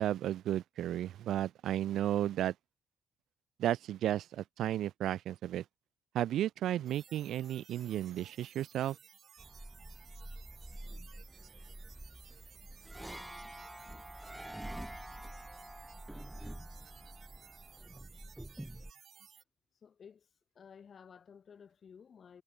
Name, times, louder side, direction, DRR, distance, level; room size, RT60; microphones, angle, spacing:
voice 1, 0.0-2.5 3.6-5.6 6.1-9.0, right 12 dB, 75° right, 0.3 m, -33 dB
sound 1, 6.9-19.4, right 8 dB, 55° right, 4.6 m, -58 dB
sound 2, 9.4-18.9, right 1 dB, 5° right, 0.4 m, -47 dB
voice 2, 19.7-22.4, left 7 dB, 50° left, 0.9 m, -55 dB
cardioid pair, 90°, 0 cm